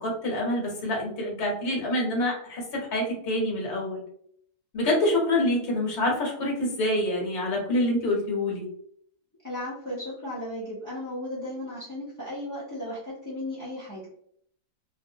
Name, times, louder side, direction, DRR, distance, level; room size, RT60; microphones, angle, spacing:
voice 1, 0.0-4.0 4.7-8.7, left 1 dB, 50° left, -1 dB, 1.0 m, -26 dB
voice 2, 9.4-14.1, left 1 dB, 25° left, -9 dB, 0.4 m, -35 dB
2.6 x 2.3 x 2.7 m, 0.65 s
omnidirectional pair, 1.6 m